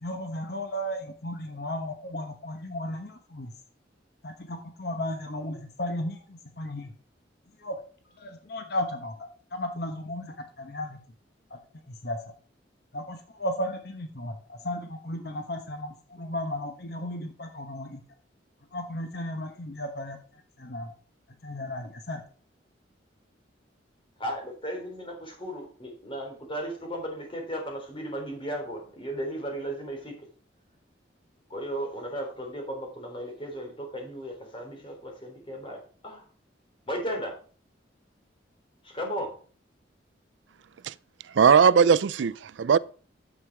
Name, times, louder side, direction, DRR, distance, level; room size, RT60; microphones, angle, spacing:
voice 1, 0.0-3.5 4.2-6.9 7.6-7.8 8.2-11.0 11.5-11.6 11.9-12.2 12.9-18.0 18.7-20.2 20.6-20.9 21.4-22.2, left 1 dB, 60° left, 1.2 m, -34 dB
voice 2, 24.2-30.2 31.5-35.8 36.0-36.2 36.9-37.3 38.8-39.3, equal, 30° left, 3.7 m, -35 dB
voice 3, 41.3-42.8, right 6 dB, 75° right, 0.4 m, -19 dB
9.9 x 7.4 x 4.8 m
head